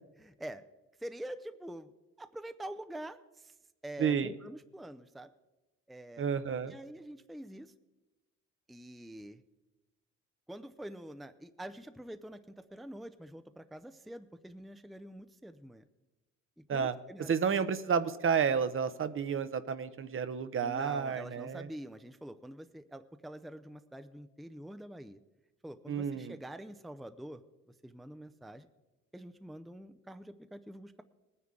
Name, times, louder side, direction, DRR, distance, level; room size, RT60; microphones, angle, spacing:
voice 1, 0.2-0.6 1.0-1.9 2.2-3.5 3.8-5.3 5.9-6.3 6.7-7.7 8.7-9.4 10.5-15.8 16.7-17.3 20.6-25.2 25.6-27.4 27.8-28.7 29.1-31.0, right 1 dB, ahead, 10 dB, 0.5 m, -46 dB
voice 2, 4.0-4.3 6.2-6.7 16.7-16.9 17.3-21.7 25.9-26.4, right 6 dB, 45° right, 12 dB, 0.7 m, -31 dB
19.5 x 9.6 x 3.7 m, 1.1 s
cardioid pair, 90°, 30 cm